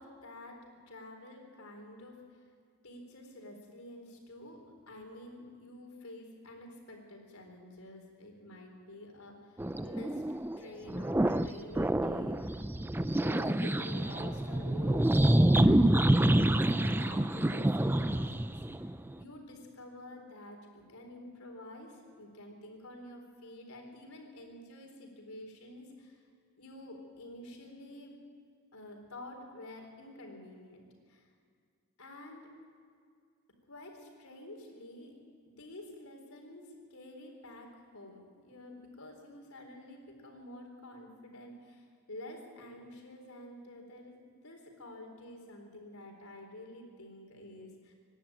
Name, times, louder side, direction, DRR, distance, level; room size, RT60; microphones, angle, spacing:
voice 1, 0.0-2.4 2.8-10.2 10.6-12.7 13.2-18.9 19.1-26.2 26.6-28.2 28.7-30.8 31.1-31.3 32.0-32.5 33.7-35.1 35.5-47.9, left 1 dB, 85° left, 2 dB, 4.1 m, -49 dB
sound 1, 9.6-10.6 10.9-11.5 11.7-19.1, right 1 dB, 10° right, 0.4 m, -27 dB
25.0 x 11.5 x 8.9 m, 2.2 s
head